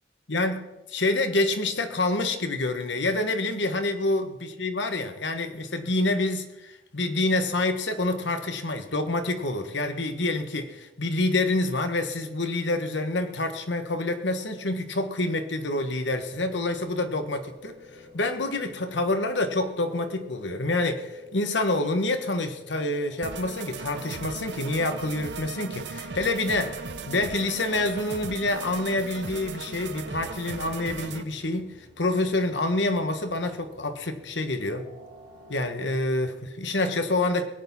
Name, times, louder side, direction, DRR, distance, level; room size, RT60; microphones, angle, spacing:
voice 1, 0.3-0.6 0.9-26.8 27.0-34.8 35.5-37.5, left 2 dB, 80° left, 7 dB, 1.5 m, -27 dB
sound 1, 16.3-35.7, left 3 dB, 40° left, 4.3 m, -51 dB
sound 2, 23.2-31.2, right 4 dB, 70° right, 0.9 m, -37 dB
21.0 x 8.5 x 5.6 m, 1.0 s
head